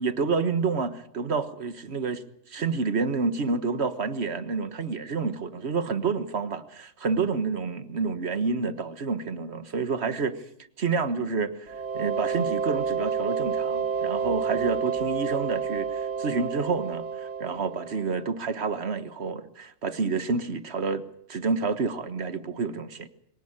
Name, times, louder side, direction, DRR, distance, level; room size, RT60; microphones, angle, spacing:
voice 1, 0.0-10.4 10.8-21.0 21.3-23.1, right 4 dB, 65° right, 1.6 m, -29 dB
sound 1, 11.7-18.3, right 6 dB, 90° right, 1.9 m, -29 dB
24.0 x 17.5 x 8.8 m
omnidirectional pair, 1.2 m